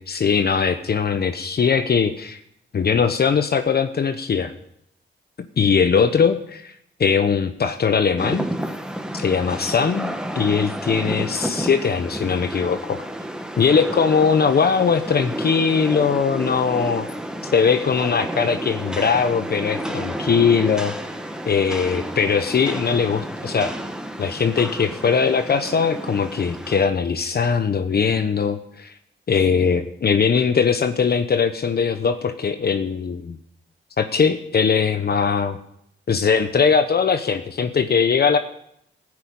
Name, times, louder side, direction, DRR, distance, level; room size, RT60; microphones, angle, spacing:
voice 1, 0.0-2.4 2.7-4.5 5.6-6.7 7.0-8.5 9.1-13.0 13.6-17.1 17.4-20.9 21.5-23.7 24.2-28.9 29.3-33.4 34.0-35.6 36.1-38.4, left 6 dB, 50° left, 9 dB, 1.1 m, -20 dB
Rain, 8.2-26.8, equal, 5° right, 1.7 m, -31 dB
14.5 x 9.8 x 8.8 m, 0.74 s
cardioid pair, 80°, 20 cm